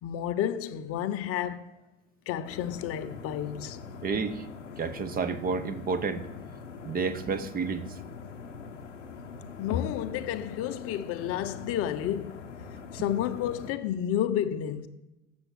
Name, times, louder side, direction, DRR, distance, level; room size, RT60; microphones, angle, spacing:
voice 1, 0.0-1.7 2.3-3.8 9.6-12.4 12.9-14.9, left 10 dB, 40° left, 0.7 m, -31 dB
sound 1, 2.4-13.7, left 5 dB, 85° left, 0.9 m, -43 dB
voice 2, 4.0-4.4 4.8-6.3 6.8-7.8, right 5 dB, 25° right, 0.8 m, -30 dB
7.8 x 6.9 x 6.2 m
figure-of-eight pair, 75°, 36 cm